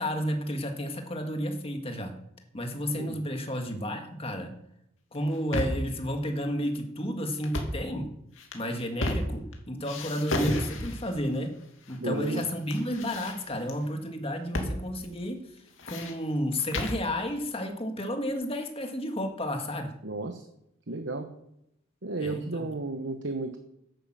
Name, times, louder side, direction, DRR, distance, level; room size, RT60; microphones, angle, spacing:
voice 1, 0.0-2.2 2.5-4.5 5.1-8.1 8.5-11.6 11.9-15.4 15.9-19.9 22.2-22.7, equal, 30° left, 4 dB, 1.8 m, -32 dB
sound 1, 5.2-5.9 7.4-7.9 8.4-9.5 9.8-11.1 11.9-12.5 12.7-13.8 14.5-14.8 15.0-15.1 15.6-17.1, left 1 dB, 75° left, 2.4 m, -32 dB
voice 2, 12.0-12.4 20.0-20.4 20.9-21.3 22.0-23.6, right 2 dB, 60° right, 6 dB, 1.1 m, -33 dB
11.0 x 9.0 x 7.5 m, 0.80 s
head